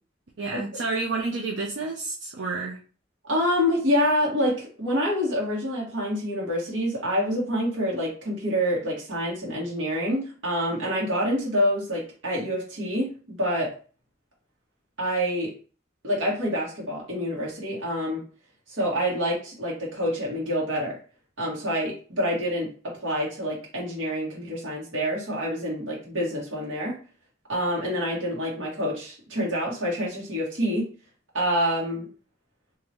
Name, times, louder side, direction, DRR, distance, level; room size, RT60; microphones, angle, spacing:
voice 1, 0.4-2.8, right 3 dB, 65° right, -2 dB, 0.6 m, -30 dB
voice 2, 3.2-13.7 15.0-15.6 16.0-18.3 18.7-21.0 21.4-27.0 27.5-30.9 31.3-32.1, equal, 85° right, -4 dB, 1.9 m, -27 dB
3.9 x 2.9 x 3.0 m, 0.39 s
head